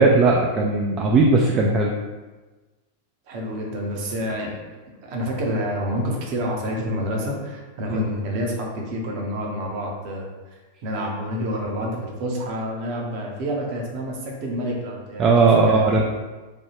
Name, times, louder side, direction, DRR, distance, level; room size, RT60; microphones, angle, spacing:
voice 1, 0.0-1.9 15.2-16.0, right 3 dB, 30° right, -1 dB, 0.3 m, -17 dB
voice 2, 3.3-4.6 5.0-10.3 10.8-15.3 15.7-15.8, equal, 45° right, -1 dB, 0.7 m, -28 dB
3.3 x 2.2 x 2.9 m, 1.2 s
figure-of-eight pair, 90°, 0 cm